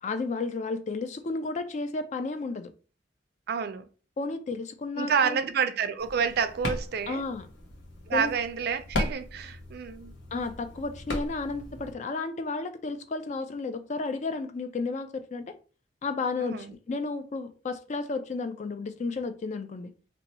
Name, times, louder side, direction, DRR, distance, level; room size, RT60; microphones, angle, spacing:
voice 1, 0.0-2.7 4.2-5.4 7.1-7.5 8.1-8.3 10.3-15.6 16.0-19.9, left 3 dB, 40° left, 0.4 m, -32 dB
voice 2, 3.5-3.8 5.0-7.2 8.1-10.1 16.4-16.7, right 6 dB, 60° right, 0.4 m, -29 dB
sound 1, 6.0-11.9, left 1 dB, 75° left, 0.9 m, -37 dB
2.7 x 2.2 x 4.1 m
head